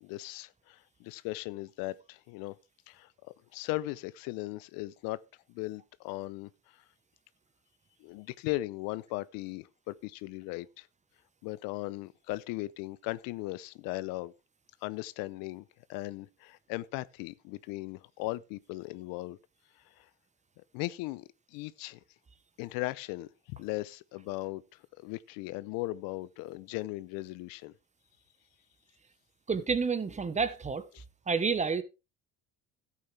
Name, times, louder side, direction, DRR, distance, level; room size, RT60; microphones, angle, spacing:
voice 1, 0.0-2.5 2.9-3.1 3.5-5.2 5.5-6.5 8.0-10.9 11.4-14.3 14.8-15.6 15.9-19.4 20.7-21.2 21.5-22.0 22.6-24.6 25.0-27.7 30.9-31.0, left 19 dB, 75° left, 0.7 m, -37 dB
voice 2, 29.5-30.8 31.3-31.8, right 5 dB, 20° right, 1.0 m, -29 dB
13.0 x 8.5 x 3.3 m
supercardioid pair, 100°, 34 cm